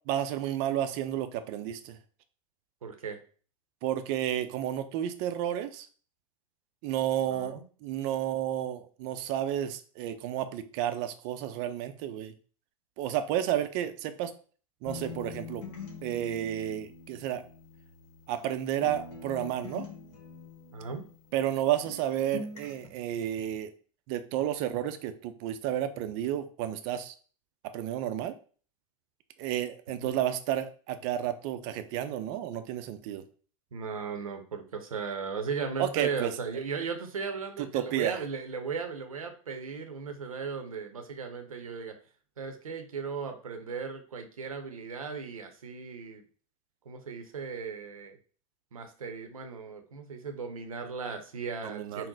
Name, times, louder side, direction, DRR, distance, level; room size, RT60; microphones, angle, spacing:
voice 1, 0.1-2.0 3.8-5.9 6.8-12.3 13.0-14.3 14.8-15.6 16.0-17.4 18.3-19.9 21.3-23.7 24.1-27.1 27.7-28.3 29.4-33.2 35.8-36.3 37.6-38.2 51.6-52.1, right 11 dB, 45° right, 10 dB, 0.5 m, -31 dB
voice 2, 2.8-3.2 7.3-7.6 20.7-21.0 30.0-30.1 33.7-41.9 42.4-46.2 46.9-48.2 48.7-52.1, right 5 dB, 80° right, 6 dB, 0.7 m, -37 dB
sound 1, 14.9-18.5 18.8-21.6 21.8-22.9, left 3 dB, 40° left, 1.3 m, -44 dB
3.8 x 2.1 x 3.9 m, 0.41 s
figure-of-eight pair, 90°, 18 cm